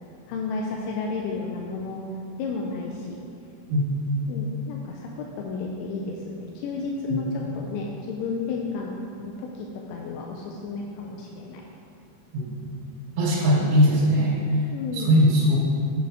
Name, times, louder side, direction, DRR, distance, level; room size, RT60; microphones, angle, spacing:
voice 1, 0.3-2.0 2.4-3.2 4.3-8.9 9.2-11.6 14.7-15.2, left 4 dB, 85° left, -1 dB, 3.1 m, -32 dB
voice 2, 13.2-14.4 14.9-15.6, equal, 75° right, -5 dB, 3.6 m, -20 dB
8.4 x 5.9 x 4.9 m, 2.4 s
omnidirectional pair, 5.6 m